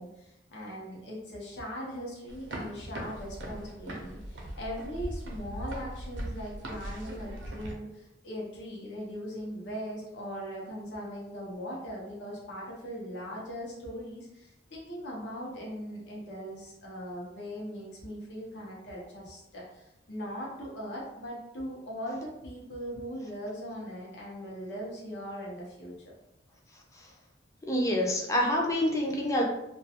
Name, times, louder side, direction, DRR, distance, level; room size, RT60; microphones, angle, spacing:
voice 1, 0.0-26.1, equal, 80° left, -4 dB, 0.7 m, -40 dB
sound 1, 2.3-7.7, right 1 dB, 90° right, 0.5 m, -39 dB
voice 2, 27.7-29.4, left 1 dB, 15° left, -1 dB, 0.4 m, -27 dB
2.3 x 2.2 x 2.8 m, 0.85 s
head